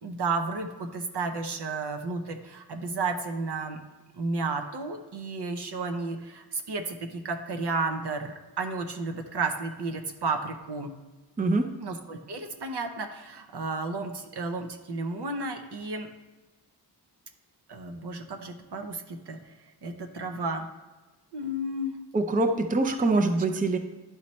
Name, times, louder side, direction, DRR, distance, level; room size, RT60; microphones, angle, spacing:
voice 1, 0.0-3.8 4.1-10.9 11.8-16.1 17.7-19.5 19.8-20.7 21.3-22.0, right 3 dB, 70° right, 6 dB, 0.8 m, -32 dB
voice 2, 22.1-23.8, right 2 dB, 20° right, 6 dB, 0.5 m, -24 dB
11.5 x 4.1 x 3.1 m, 1.2 s
wide cardioid pair, 100°, 41 cm